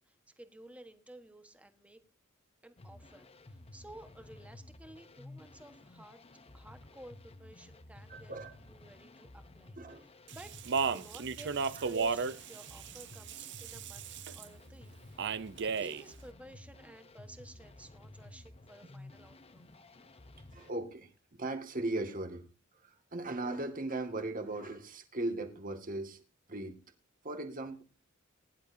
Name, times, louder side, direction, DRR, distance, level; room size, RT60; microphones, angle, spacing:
voice 1, 0.0-2.0 2.6-6.2 6.5-8.3 8.6-14.1 14.3-15.3 15.6-19.7, right 1 dB, 5° right, 8 dB, 1.4 m, -54 dB
sound 1, 2.8-20.7, left 2 dB, 30° left, 0.8 m, -54 dB
voice 2, 8.1-8.5 9.8-10.0 11.8-11.9 20.5-22.5 22.8-26.2 26.5-26.8 27.2-27.8, right 2 dB, 40° right, 5 dB, 2.1 m, -38 dB
Speech, 10.3-14.4 15.2-16.0, right 5 dB, 55° right, 0.7 m, -34 dB
21.0 x 11.0 x 2.8 m, 0.32 s
head